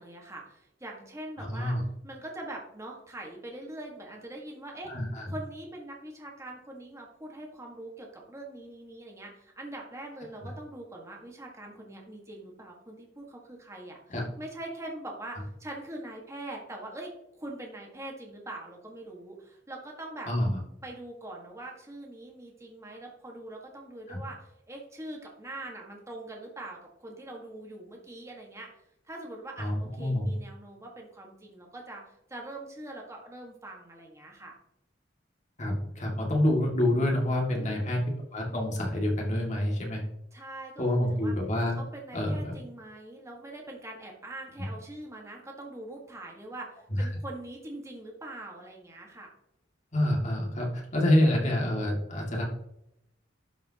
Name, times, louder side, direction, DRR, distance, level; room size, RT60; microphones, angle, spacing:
voice 1, 0.0-1.8 2.0-4.9 5.3-20.3 20.8-28.7 29.0-34.5 37.5-38.0 40.3-41.3 41.8-49.3, right 1 dB, 15° right, 0 dB, 1.6 m, -43 dB
voice 2, 1.4-1.8 4.9-5.2 14.1-14.2 20.3-20.5 24.1-24.2 29.6-30.3 35.6-38.0 38.3-40.0 40.8-41.8 42.1-42.5 46.9-47.0 49.9-52.4, left 1 dB, 40° left, -1 dB, 2.2 m, -27 dB
12.0 x 5.5 x 2.9 m, 0.80 s
head